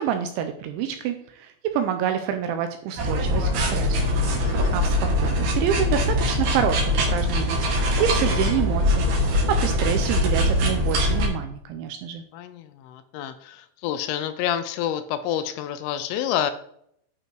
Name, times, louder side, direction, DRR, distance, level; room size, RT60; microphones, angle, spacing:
voice 1, 0.0-4.2 4.7-12.2, right 9 dB, 80° right, 7 dB, 2.8 m, -27 dB
sound 1, 3.0-11.3, left 1 dB, 55° right, 3.3 m, -22 dB
voice 2, 4.4-4.8 12.3-16.5, left 10 dB, 80° left, 11 dB, 3.1 m, -28 dB
11.0 x 5.6 x 4.7 m, 0.68 s
omnidirectional pair, 5.9 m